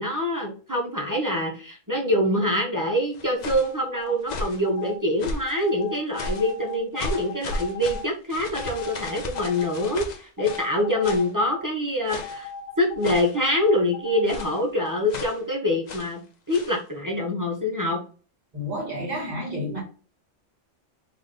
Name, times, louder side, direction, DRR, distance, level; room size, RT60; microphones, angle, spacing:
voice 1, 0.0-12.5 12.8-16.2 16.5-18.0, left 1 dB, 20° right, 0.7 m, -25 dB
sound 1, 3.1-3.7 4.2-4.6 5.2-5.6 6.1-6.5 7.0-10.7 11.0-11.3 12.1-12.5 13.0-13.4 14.3-14.6 15.1-15.4 15.9-16.1 16.5-16.8, left 2 dB, 50° left, 0.5 m, -35 dB
sound 2, 3.6-4.2 4.7-5.0 5.5-8.1 8.5-9.9 10.4-11.6 12.1-14.5, left 6 dB, 85° left, 1.2 m, -38 dB
voice 2, 18.5-19.8, equal, 35° right, 1.7 m, -30 dB
3.7 x 2.5 x 3.6 m
omnidirectional pair, 1.3 m